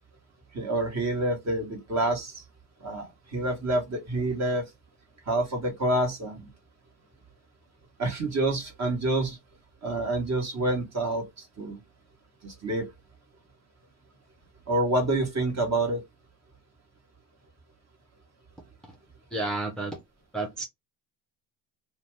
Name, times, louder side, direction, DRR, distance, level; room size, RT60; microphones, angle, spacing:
voice 1, 0.5-2.4 2.8-4.7 5.3-6.5 8.0-9.4 9.8-11.8 12.4-12.9 14.7-16.0, right 1 dB, 35° right, 1.3 m, -28 dB
voice 2, 19.3-20.0 20.3-20.7, right 2 dB, ahead, 0.5 m, -31 dB
2.6 x 2.2 x 3.3 m
supercardioid pair, 90°, 47 cm